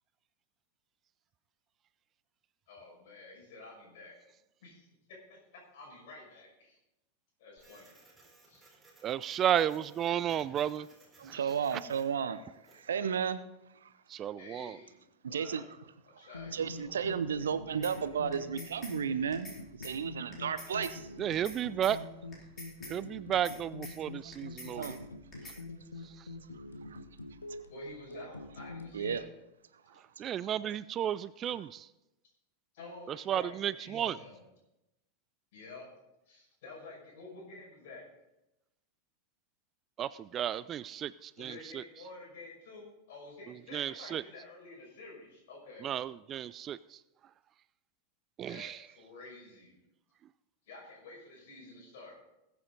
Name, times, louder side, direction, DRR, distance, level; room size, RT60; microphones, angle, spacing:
voice 1, 2.7-4.2 4.6-4.9 5.3-6.8 7.4-7.9 8.5-8.7 14.4-15.0 15.3-15.7 16.0-17.0 27.7-29.3 32.7-34.4 35.5-35.9 36.3-38.1 41.4-45.9 48.5-49.8 50.7-52.2, left 3 dB, 55° left, -1 dB, 5.8 m, -50 dB
Printer, 7.6-12.9, right 3 dB, 10° right, 4.1 m, -62 dB
voice 2, 9.0-10.9 11.2-11.4 14.1-14.8 21.2-22.0 22.9-25.0 26.0-26.2 30.2-31.9 33.1-34.2 40.0-41.8 43.7-44.2 45.8-47.0 48.4-48.8, right 10 dB, 30° right, 18 dB, 0.3 m, -33 dB
voice 3, 11.2-12.4 12.7-13.4 13.8-13.9 15.2-15.6 16.5-19.5 19.8-21.1 24.7-25.0 26.9-27.0 28.9-29.2 30.2-30.3, right 7 dB, 65° right, 13 dB, 0.7 m, -33 dB
sound 1, 16.3-29.2, left 2 dB, 80° left, 1.1 m, -46 dB
sound 2, 17.8-17.9 18.3-18.9 19.3-19.6 19.8-19.9 20.3-20.9 21.3-21.6 21.8-21.9 22.3-22.9 23.3-23.6 23.8-23.9 24.3-24.9 25.3-25.6, left 2 dB, 25° left, 4.7 m, -46 dB
20.0 x 8.3 x 4.0 m, 0.92 s
figure-of-eight pair, 90°, 0 cm